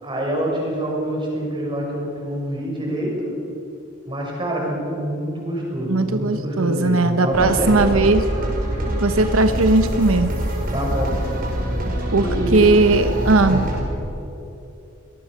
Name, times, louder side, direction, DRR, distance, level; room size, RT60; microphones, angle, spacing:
voice 1, 0.0-3.3 4.0-7.8 10.7-11.2 12.2-12.6 13.5-13.6, equal, 25° right, -2 dB, 6.5 m, -26 dB
voice 2, 5.9-8.3 9.0-10.3 12.1-13.7, right 3 dB, 85° right, 8 dB, 1.1 m, -18 dB
sound 1, 7.3-13.8, equal, 45° right, 5.1 m, -25 dB
24.5 x 19.0 x 6.6 m, 2.9 s
head